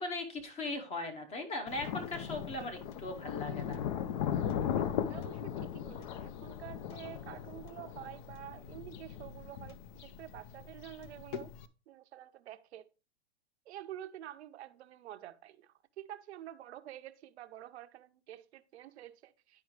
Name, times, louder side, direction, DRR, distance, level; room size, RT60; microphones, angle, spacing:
voice 1, 0.0-3.8, left 2 dB, 20° left, 0.9 m, -39 dB
Thunder, 1.7-11.7, left 9 dB, 45° left, 0.5 m, -38 dB
voice 2, 4.7-11.5 11.9-12.9 13.7-19.6, right 12 dB, 70° right, 0.6 m, -49 dB
10.5 x 4.9 x 3.1 m
hypercardioid pair, 135°, 35 cm